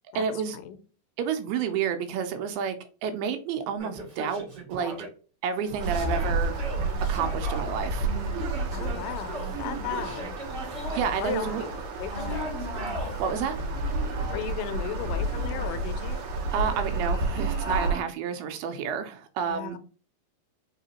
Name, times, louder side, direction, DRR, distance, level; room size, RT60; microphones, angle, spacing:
voice 1, 0.2-0.6 1.2-2.8 3.0-4.9 5.4-6.6 7.1-8.1 10.9-11.6 13.2-13.6 16.5-19.8, right 7 dB, 85° right, 8 dB, 2.6 m, -30 dB
Yell, 3.8-5.1 5.8-7.6 8.4-9.5 9.9-11.1 12.1-13.1, right 1 dB, 35° right, 2.2 m, -39 dB
sound 1, 5.6-18.0, right 3 dB, 50° right, 1.6 m, -40 dB
sound 2, 5.8-17.9, right 2 dB, 70° right, 2.3 m, -31 dB
voice 2, 8.7-10.3 11.2-11.6 12.0-12.6 14.3-16.2 19.5-19.8, left 10 dB, 85° left, 10 dB, 2.5 m, -35 dB
5.7 x 3.0 x 2.8 m, 0.38 s
omnidirectional pair, 4.5 m